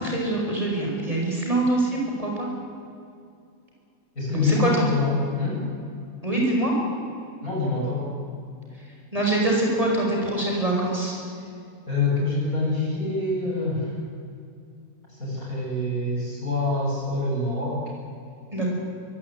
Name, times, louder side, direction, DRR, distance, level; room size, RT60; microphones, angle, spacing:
voice 1, 0.0-2.5 4.3-4.9 6.2-6.7 9.1-11.2 18.5-18.7, right 2 dB, 20° right, -2 dB, 5.6 m, -24 dB
voice 2, 4.2-5.6 7.4-8.1 11.9-13.9 15.2-17.8, left 3 dB, 55° left, -3 dB, 7.5 m, -25 dB
23.0 x 16.5 x 8.9 m, 2.4 s
omnidirectional pair, 1.8 m